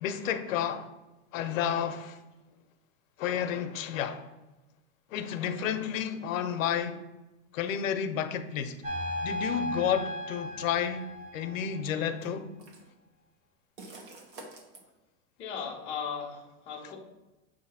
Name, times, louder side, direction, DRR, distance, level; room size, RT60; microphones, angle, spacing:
voice 1, 0.0-0.9 1.3-2.2 3.2-4.2 5.1-7.0 7.5-8.8 9.2-12.5, left 8 dB, 80° left, 0.6 m, -31 dB
sound 1, 8.8-12.0, equal, 35° right, 0.9 m, -36 dB
sound 2, 10.7-10.9 12.2-12.9 13.8-14.8, right 2 dB, 55° right, 1.1 m, -47 dB
voice 2, 15.4-17.0, left 6 dB, 15° left, 0.5 m, -37 dB
6.5 x 2.7 x 5.4 m
supercardioid pair, 175°, 39 cm